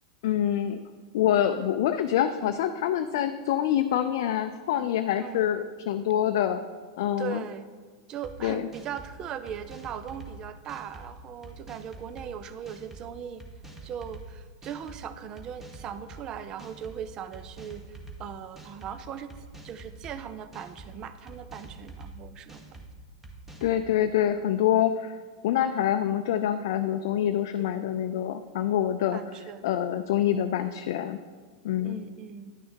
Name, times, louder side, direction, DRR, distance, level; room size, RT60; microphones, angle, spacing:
voice 1, 0.2-0.8 1.1-6.6 7.0-7.4 8.4-8.7 23.6-25.2 25.4-29.2 29.6-31.2 31.6-32.0, left 10 dB, 60° left, 7 dB, 0.4 m, -26 dB
voice 2, 7.2-7.7 8.1-13.4 13.8-19.4 19.6-22.8 27.6-27.9 29.1-29.7 31.8-32.6, right 8 dB, 35° right, 12 dB, 0.6 m, -39 dB
sound 1, 8.2-8.3 8.7-9.1 9.5-10.3 10.7-11.1 11.4-12.3 12.7-13.0 13.4-14.2 14.6-15.0 15.4-16.2 16.6-17.0 17.3-18.2 18.6-18.9 19.3-20.1 20.5-20.9 21.3-22.1 22.5-22.9 23.2-23.8, right 3 dB, 15° right, 1.5 m, -45 dB
10.5 x 6.3 x 4.5 m, 1.5 s
hypercardioid pair, 100°, 2 cm